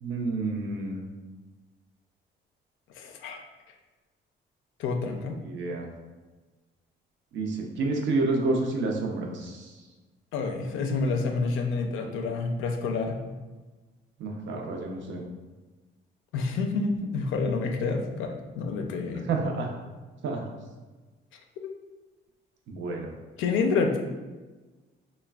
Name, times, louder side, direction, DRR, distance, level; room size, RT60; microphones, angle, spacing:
voice 1, 0.0-1.0 5.4-5.9 7.3-9.5 14.2-15.2 19.3-19.7 20.2-20.4 22.7-23.1, right 3 dB, 70° right, 1 dB, 0.5 m, -29 dB
voice 2, 3.0-3.4 4.8-5.4 10.3-13.2 16.3-19.3 21.6-21.8 23.4-24.0, left 4 dB, 80° left, 3 dB, 0.4 m, -28 dB
3.2 x 2.1 x 2.2 m, 1.3 s
cardioid pair, 90°, 20 cm